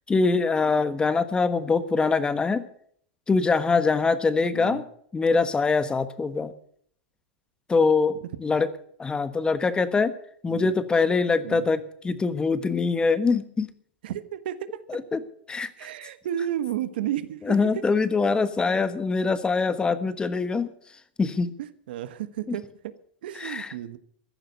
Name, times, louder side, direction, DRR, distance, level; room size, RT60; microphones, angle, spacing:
voice 1, 0.1-2.6 3.3-4.8 5.1-6.5 7.7-8.7 9.0-10.1 10.4-13.7 14.9-15.2 15.5-15.7 17.4-20.7 21.2-21.5 22.5-22.6 23.4-23.7, left 4 dB, 15° left, 13 dB, 1.3 m, -23 dB
voice 2, 4.5-4.8 10.5-10.7 11.4-11.7 14.0-14.7 15.8-17.8 21.6-22.9 23.2-24.0, right 11 dB, 70° right, 13 dB, 1.3 m, -32 dB
14.5 x 11.0 x 6.6 m, 0.62 s
hypercardioid pair, 105°, 5 cm